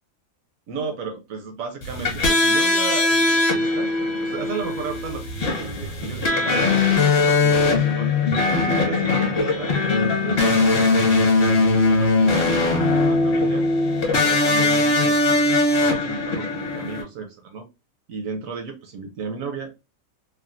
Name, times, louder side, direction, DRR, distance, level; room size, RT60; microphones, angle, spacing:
voice 1, 0.7-3.9 4.2-8.1 8.7-9.7 10.2-13.6 14.2-17.6 18.1-19.7, right 5 dB, 65° right, 5 dB, 0.9 m, -34 dB
sound 1, 1.8-17.0, left 3 dB, 45° left, 1.1 m, -20 dB
3.4 x 2.2 x 2.5 m, 0.27 s
omnidirectional pair, 1.8 m